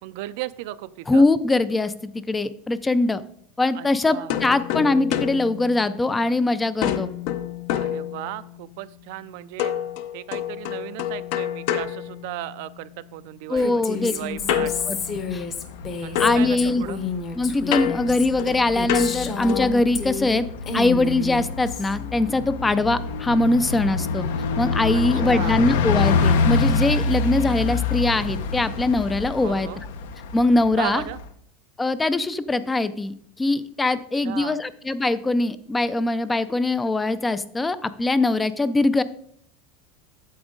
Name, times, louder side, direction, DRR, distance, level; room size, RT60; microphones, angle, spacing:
voice 1, 0.0-1.3 3.7-4.4 7.7-9.7 10.1-14.7 16.0-17.0 24.9-25.6 29.4-29.8 30.8-31.2 34.1-34.6, right 15 dB, 60° right, 15 dB, 0.4 m, -35 dB
voice 2, 1.1-3.2 3.6-7.1 13.5-14.1 14.6-15.0 15.3-15.4 16.2-16.8 17.4-20.5 20.7-24.3 24.6-29.7 30.3-31.0 31.8-39.0, left 2 dB, 10° left, 14 dB, 0.3 m, -22 dB
sound 1, 4.3-6.4 6.8-8.6 9.6-12.8 14.5-15.9 16.1-19.8, left 11 dB, 55° left, 0.6 m, -29 dB
Female speech woman speaking, 13.6-20.4 20.7-21.9, left 4 dB, 30° left, 0.8 m, -31 dB
Bus, 14.2-31.3, left 4 dB, 80° left, 0.8 m, -27 dB
8.6 x 7.1 x 3.8 m, 0.65 s
supercardioid pair, 155°, 0 cm